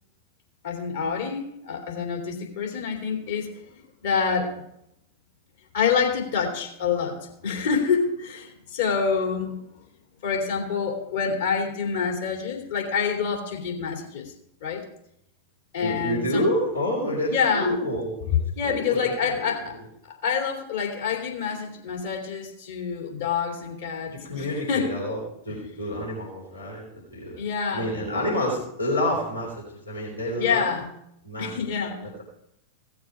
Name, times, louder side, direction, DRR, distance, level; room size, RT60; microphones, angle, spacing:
voice 1, 0.6-4.5 5.7-9.5 10.2-14.3 14.6-14.8 15.7-16.5 17.3-17.8 18.6-19.8 20.1-24.9 25.5-25.6 27.4-28.0 30.3-30.9 31.4-32.2, left 6 dB, 60° left, 1 dB, 2.8 m, -27 dB
voice 2, 15.8-19.8 24.1-27.4 27.7-30.7 31.2-31.5, equal, 85° left, -4 dB, 3.5 m, -29 dB
16.0 x 7.1 x 4.9 m, 0.77 s
figure-of-eight pair, 90°, 0 cm